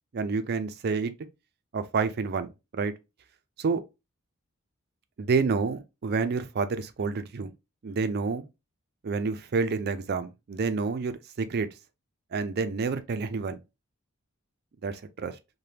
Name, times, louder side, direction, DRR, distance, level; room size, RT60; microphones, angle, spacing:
voice 1, 0.1-1.1 1.7-2.5 2.7-2.9 3.6-3.8 5.2-7.5 7.8-8.5 9.0-11.7 12.3-13.6 14.8-15.4, right 4 dB, 50° right, 0.4 m, -28 dB
3.3 x 2.2 x 2.7 m
head